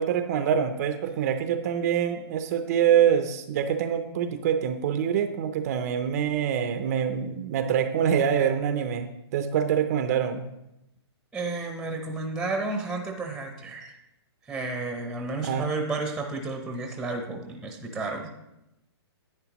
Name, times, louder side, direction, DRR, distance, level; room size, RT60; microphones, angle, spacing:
voice 1, 0.0-10.4 15.4-15.7, right 8 dB, 35° right, 9 dB, 0.6 m, -25 dB
voice 2, 11.3-14.0 14.4-18.3, right 3 dB, 5° right, 3 dB, 0.8 m, -32 dB
11.0 x 9.0 x 3.0 m, 0.89 s
hypercardioid pair, 155°, 14 cm